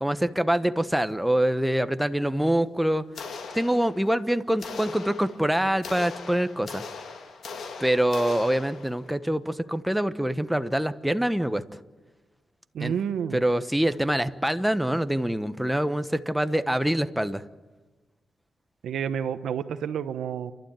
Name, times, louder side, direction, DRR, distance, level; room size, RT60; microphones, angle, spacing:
voice 1, 0.0-3.0 3.5-6.8 7.8-11.6 12.8-12.9 13.3-17.4, right 1 dB, 5° right, 11 dB, 1.1 m, -25 dB
sound 1, 3.1-4.2 4.6-9.1, left 4 dB, 75° left, 2.6 m, -40 dB
voice 2, 12.7-13.4 18.8-20.5, right 8 dB, 85° right, 13 dB, 0.9 m, -29 dB
29.5 x 12.0 x 8.9 m, 1.2 s
cardioid pair, 75°, 0 cm